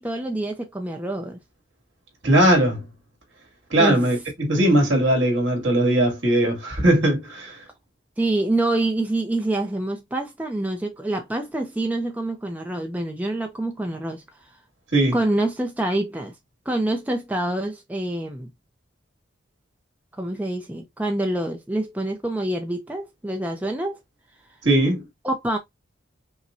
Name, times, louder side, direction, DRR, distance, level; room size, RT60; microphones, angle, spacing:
voice 1, 0.0-1.4 3.8-4.0 8.2-14.2 15.1-16.3 16.7-18.5 20.2-24.0 25.2-25.6, right 1 dB, 10° right, 0.5 m, -26 dB
voice 2, 2.2-2.8 3.7-7.6 14.9-15.2 24.6-25.0, right 1 dB, 65° right, 2.2 m, -19 dB
5.5 x 2.2 x 2.6 m
head